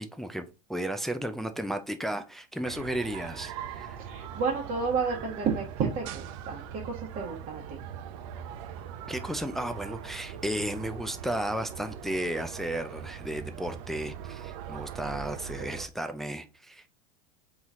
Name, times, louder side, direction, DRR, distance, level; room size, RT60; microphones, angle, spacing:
voice 1, 0.0-4.0 9.1-16.9, right 1 dB, ahead, 0.4 m, -34 dB
sound 1, 2.6-15.9, right 8 dB, 65° right, 0.6 m, -41 dB
voice 2, 4.0-7.8, right 5 dB, 45° right, 1.2 m, -31 dB
4.0 x 3.1 x 3.6 m
supercardioid pair, 115°, 18 cm